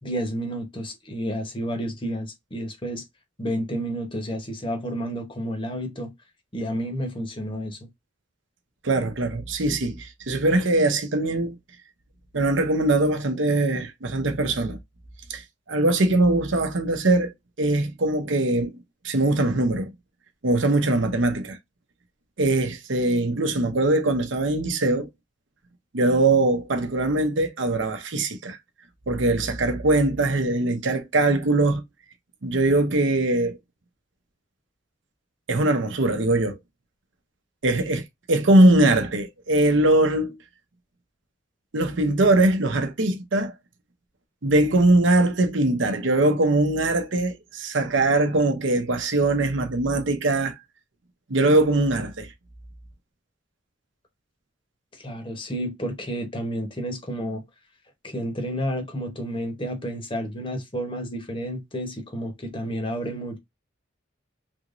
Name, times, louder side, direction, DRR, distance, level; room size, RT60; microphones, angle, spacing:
voice 1, 0.0-3.0 3.4-6.1 6.5-7.8 54.9-57.4 58.0-63.4, equal, 25° left, 0.9 m, -30 dB
voice 2, 8.8-11.6 12.3-14.8 15.3-15.4 15.7-18.7 19.0-19.9 20.4-21.6 22.4-25.1 25.9-28.6 29.1-31.8 32.4-33.6 35.5-36.6 37.6-40.4 41.7-43.5 44.4-50.5 51.3-52.3, right 2 dB, 70° right, 0.8 m, -21 dB
3.5 x 3.0 x 2.5 m
head